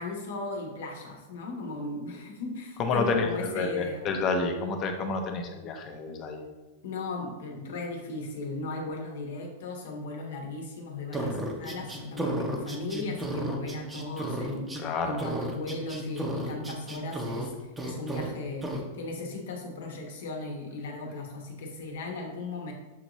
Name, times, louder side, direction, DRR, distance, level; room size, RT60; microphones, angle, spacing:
voice 1, 0.0-4.0 6.8-22.7, left 2 dB, 75° left, 2 dB, 1.0 m, -37 dB
voice 2, 2.8-6.4 14.8-15.2, left 4 dB, 30° left, 4 dB, 0.6 m, -29 dB
sound 1, 11.1-14.8 15.2-17.5 17.8-18.3 18.6-18.8, right 1 dB, 10° right, 0.6 m, -33 dB
6.3 x 2.6 x 3.0 m, 1.1 s
supercardioid pair, 145°, 0 cm